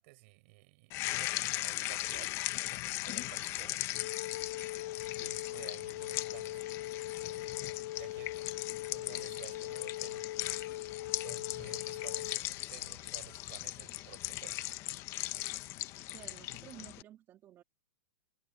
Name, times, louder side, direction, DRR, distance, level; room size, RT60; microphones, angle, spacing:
voice 1, 0.0-4.2 4.6-8.4 8.6-10.2 11.2-14.6, right 26 dB, 40° right, 7.0 m, -54 dB
sound 1, 0.9-17.0, left 17 dB, 30° left, 1.2 m, -39 dB
Wind instrument woodwind instrument, 3.9-12.4, left 15 dB, 60° left, 0.4 m, -41 dB
voice 2, 16.1-17.6, right 12 dB, 25° right, 2.4 m, -53 dB
hypercardioid pair, 155°, 10 cm